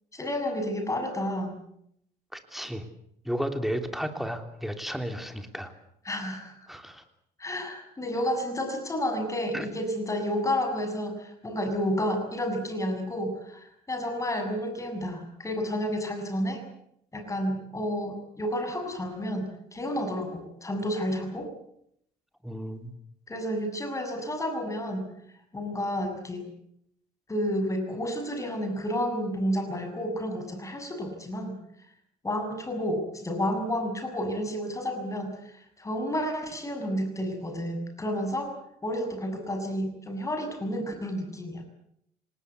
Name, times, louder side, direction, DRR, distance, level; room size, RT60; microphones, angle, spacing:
voice 1, 0.1-1.5 6.1-6.7 7.4-16.6 17.1-21.5 23.3-25.1 25.5-26.5 27.3-31.6 32.2-38.5 38.8-41.6, equal, 20° left, 6 dB, 7.3 m, -31 dB
voice 2, 2.3-2.8 3.2-5.7 6.7-7.0 9.5-9.7 22.4-22.9, equal, ahead, 6 dB, 3.2 m, -33 dB
26.5 x 19.5 x 8.3 m, 0.74 s
cardioid pair, 110°, 17 cm